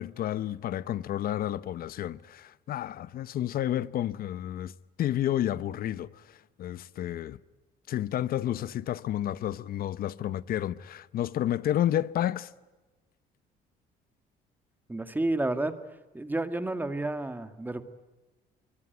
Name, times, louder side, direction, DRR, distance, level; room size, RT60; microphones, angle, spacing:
voice 1, 0.0-7.4 7.9-12.5, left 12 dB, 60° left, 1.0 m, -31 dB
voice 2, 14.9-15.8 16.1-17.8, right 2 dB, 10° right, 2.0 m, -30 dB
26.5 x 24.0 x 9.3 m
cardioid pair, 110°, 17 cm